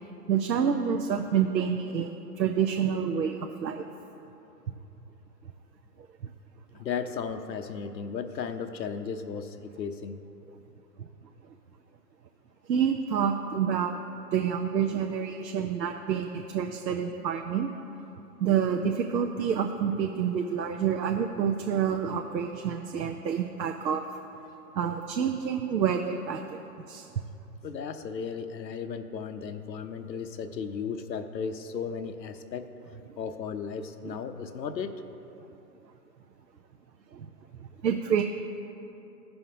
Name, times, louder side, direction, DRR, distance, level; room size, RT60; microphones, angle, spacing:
voice 1, 0.3-3.9 11.0-11.1 12.7-14.0 14.3-17.7 18.4-24.1 24.7-26.6 26.9-27.1 37.1-37.3 37.8-38.2, right 7 dB, 85° right, 5 dB, 0.7 m, -28 dB
voice 2, 6.8-10.2 27.6-32.7 33.2-35.0, left 6 dB, 85° left, 9 dB, 0.8 m, -35 dB
15.5 x 5.7 x 2.7 m, 3.0 s
hypercardioid pair, 145°, 50 cm